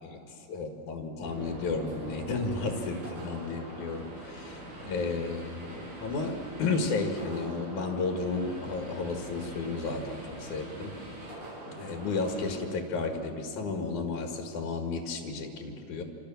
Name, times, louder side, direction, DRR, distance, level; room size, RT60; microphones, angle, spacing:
voice 1, 0.0-10.9 11.7-16.0, left 3 dB, 60° left, 3 dB, 3.1 m, -33 dB
sound 1, 1.2-12.6, right 1 dB, 65° right, 9.6 m, -43 dB
28.0 x 27.5 x 7.1 m, 3.0 s
omnidirectional pair, 4.3 m